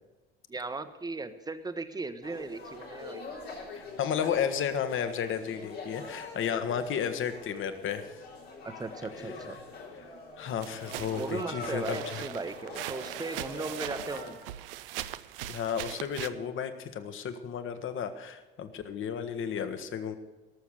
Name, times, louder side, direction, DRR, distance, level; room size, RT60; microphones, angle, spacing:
voice 1, 0.5-3.2 8.6-9.6 11.1-14.4, right 3 dB, 15° right, 10 dB, 1.0 m, -37 dB
sound 1, 2.2-14.3, left 3 dB, 85° left, 3.9 m, -44 dB
voice 2, 3.7-8.0 10.4-12.2 15.5-20.1, left 8 dB, 40° left, 9 dB, 1.3 m, -33 dB
sound 2, 10.6-16.3, right 14 dB, 70° right, 0.6 m, -40 dB
18.0 x 7.1 x 6.7 m, 1.2 s
figure-of-eight pair, 65°, 30 cm